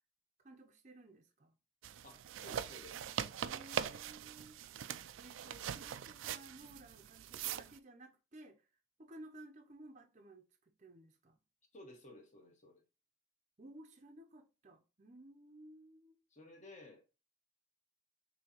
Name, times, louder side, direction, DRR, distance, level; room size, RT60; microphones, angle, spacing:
voice 1, 0.4-1.5 3.4-4.6 5.1-8.6 9.0-10.4 10.8-11.4 13.6-16.2, right 1 dB, 35° right, 0.6 m, -56 dB
sound 1, 1.8-7.8, right 9 dB, 75° right, 0.3 m, -42 dB
voice 2, 2.0-3.0 11.7-12.8 16.3-17.0, left 2 dB, 35° left, 1.2 m, -55 dB
6.5 x 2.8 x 2.9 m
head